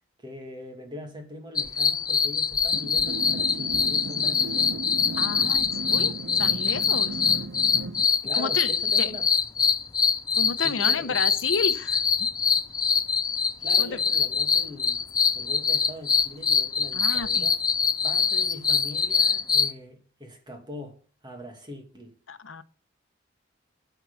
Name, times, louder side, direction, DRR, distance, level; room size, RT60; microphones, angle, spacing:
voice 1, 0.2-4.8 6.2-6.7 8.2-9.3 10.6-11.2 13.6-15.0 15.3-17.6 18.0-21.0 21.2-22.1, left 1 dB, 25° right, 2.3 m, -42 dB
sound 1, 1.6-19.7, left 6 dB, 20° left, 0.5 m, -24 dB
sound 2, 2.7-8.1, right 3 dB, 65° right, 0.7 m, -36 dB
voice 2, 5.2-7.2 8.3-8.7 9.0-9.2 10.3-12.3 13.8-14.0 16.9-17.5 22.3-22.6, left 5 dB, 80° left, 0.8 m, -31 dB
12.5 x 4.6 x 7.0 m
head